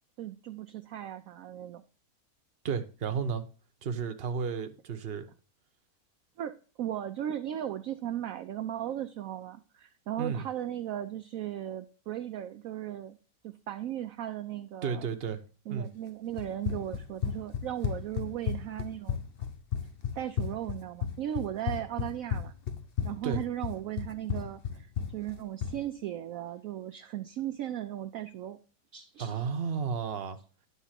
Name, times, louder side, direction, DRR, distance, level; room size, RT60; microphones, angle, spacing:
voice 1, 0.2-1.8 6.4-13.2 13.4-15.1 15.7-19.2 20.2-22.5 23.0-24.9 25.1-28.6 28.9-29.4, right 11 dB, 65° right, 0.9 m, -37 dB
voice 2, 2.6-3.4 3.8-5.3 10.2-10.4 14.8-15.4 15.7-15.9 23.2-23.4 29.2-30.4, right 6 dB, 40° right, 1.0 m, -32 dB
Run, 16.4-25.8, left 8 dB, 45° left, 0.8 m, -34 dB
11.0 x 3.7 x 7.4 m
omnidirectional pair, 1.8 m